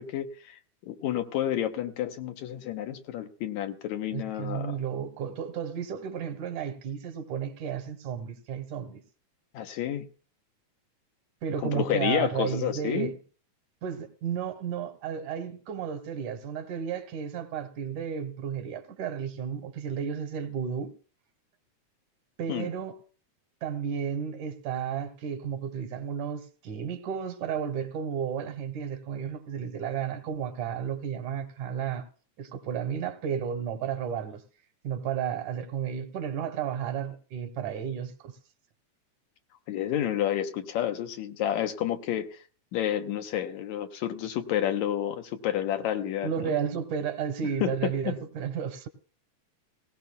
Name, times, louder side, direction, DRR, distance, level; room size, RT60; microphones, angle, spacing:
voice 1, 0.0-4.8 9.5-10.1 11.6-13.1 22.5-22.7 39.7-42.4 42.7-46.5 47.6-48.2, left 11 dB, 75° left, 2.2 m, -30 dB
voice 2, 4.1-9.0 11.4-13.2 13.8-20.9 22.4-23.0 23.6-32.1 32.4-34.4 34.8-38.4 46.2-48.9, right 8 dB, 85° right, 2.7 m, -33 dB
18.0 x 17.5 x 2.3 m
omnidirectional pair, 3.4 m